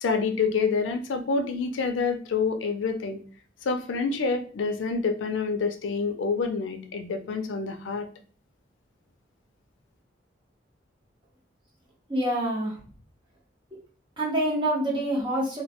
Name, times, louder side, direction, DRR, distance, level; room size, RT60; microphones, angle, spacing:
voice 1, 0.0-3.2 3.6-8.1, left 4 dB, 90° left, 6 dB, 0.4 m, -27 dB
voice 2, 12.1-12.8 14.2-15.6, right 1 dB, 25° right, -4 dB, 0.8 m, -26 dB
2.2 x 2.1 x 2.7 m, 0.42 s
head